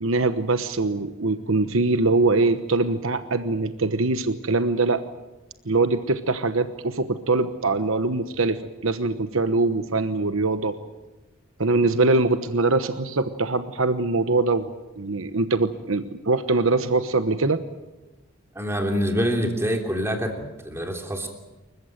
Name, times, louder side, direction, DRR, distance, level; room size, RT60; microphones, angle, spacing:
voice 1, 0.0-5.0 5.6-10.8 11.6-17.6, right 3 dB, 80° right, 10 dB, 1.2 m, -23 dB
voice 2, 18.5-21.3, equal, 10° right, 3 dB, 3.2 m, -26 dB
28.5 x 15.5 x 9.2 m, 1.1 s
head